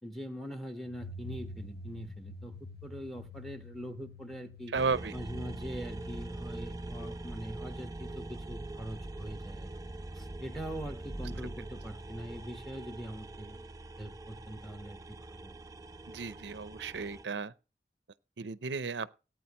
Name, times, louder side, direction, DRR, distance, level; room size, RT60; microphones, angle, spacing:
voice 1, 0.0-2.6 2.8-4.7 5.1-9.7 10.1-13.6 14.0-15.6, equal, ahead, 1.3 m, -43 dB
sound 1, 0.9-7.4, left 1 dB, 60° left, 1.6 m, -48 dB
sound 2, 4.7-17.2, right 2 dB, 20° right, 0.6 m, -43 dB
voice 2, 4.7-5.1 16.1-17.5 18.4-19.1, right 4 dB, 85° right, 0.7 m, -34 dB
18.0 x 9.1 x 3.0 m
head